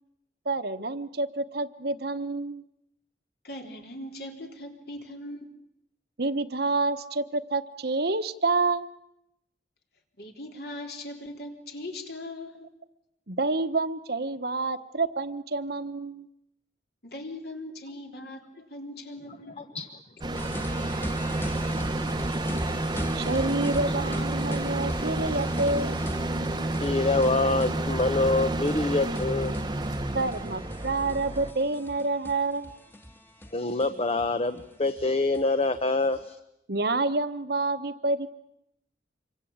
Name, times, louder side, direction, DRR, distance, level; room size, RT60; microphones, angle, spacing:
voice 1, 0.4-2.6 6.2-8.9 13.3-16.3 23.1-26.0 30.1-32.7 36.7-38.3, right 3 dB, 60° right, 10 dB, 1.2 m, -28 dB
voice 2, 3.4-5.6 10.2-12.7 17.0-19.6, left 1 dB, 60° left, 3 dB, 3.7 m, -40 dB
sound 1, 20.2-31.5, right 1 dB, 25° right, 1.0 m, -30 dB
sound 2, 20.3-36.2, equal, 15° left, 1.6 m, -41 dB
voice 3, 26.8-29.5 33.5-36.4, left 2 dB, 35° left, 10 dB, 1.0 m, -25 dB
26.5 x 23.5 x 8.7 m, 0.82 s
head